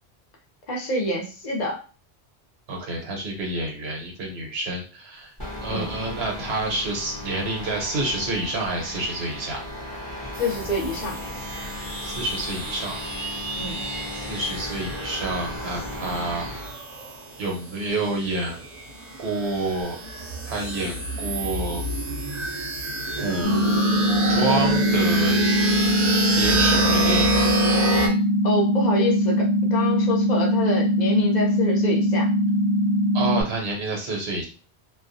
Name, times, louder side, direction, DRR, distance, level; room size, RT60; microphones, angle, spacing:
voice 1, 0.7-1.8 5.7-5.9 10.4-11.2 13.6-13.8 28.4-32.3, left 1 dB, 50° left, 0 dB, 0.7 m, -27 dB
voice 2, 2.7-5.3 5.6-9.6 12.0-13.0 14.1-16.5 17.4-18.6 19.2-20.0 20.4-21.8 23.2-23.9 24.3-25.5 26.3-27.5 33.1-34.5, right 2 dB, 70° right, 1 dB, 1.0 m, -28 dB
sound 1, 5.4-16.8, left 1 dB, 20° left, 0.8 m, -36 dB
sound 2, 10.3-28.1, right 2 dB, 50° right, 0.6 m, -29 dB
sound 3, 23.4-33.4, equal, 90° left, 0.9 m, -21 dB
2.3 x 2.2 x 2.5 m, 0.36 s
omnidirectional pair, 1.1 m